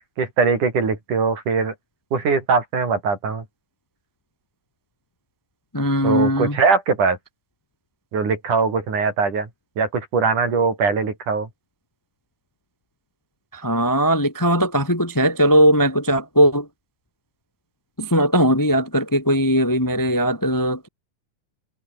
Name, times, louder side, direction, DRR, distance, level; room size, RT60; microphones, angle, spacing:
voice 1, 0.2-1.7 2.1-3.4 6.0-7.2 8.1-9.5 9.8-11.5, right 5 dB, 85° right, 6.7 m, -21 dB
voice 2, 5.7-6.6 13.5-16.7 18.0-20.9, equal, 10° left, 0.9 m, -19 dB
omnidirectional pair, 3.5 m